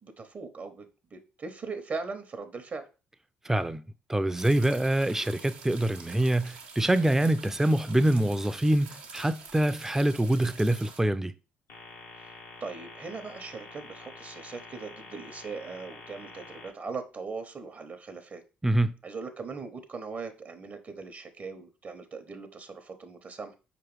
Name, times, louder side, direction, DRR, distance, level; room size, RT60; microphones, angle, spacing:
voice 1, 0.0-2.8 12.2-12.3 12.6-18.4 19.0-23.5, right 4 dB, 40° right, 0.7 m, -40 dB
voice 2, 3.4-3.8 4.1-11.3 18.6-18.9, right 1 dB, 10° right, 0.4 m, -25 dB
sound 1, 4.4-11.0, right 5 dB, 90° right, 0.8 m, -47 dB
sound 2, 11.7-16.7, left 4 dB, 85° left, 0.9 m, -47 dB
4.6 x 3.0 x 3.1 m
hypercardioid pair, 55°, 4 cm